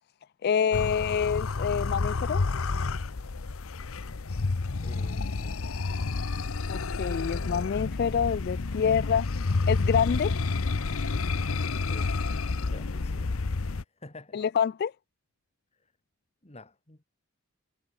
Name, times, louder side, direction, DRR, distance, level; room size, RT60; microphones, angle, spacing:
voice 1, 0.4-2.4 6.7-9.3 9.7-10.3 14.3-14.9, left 7 dB, 45° left, 0.3 m, -27 dB
Growl + Cough, 0.7-13.8, left 3 dB, 65° left, 0.8 m, -30 dB
voice 2, 4.8-5.7 11.9-12.3 12.7-14.4 16.4-17.0, left 2 dB, 30° left, 2.4 m, -49 dB
head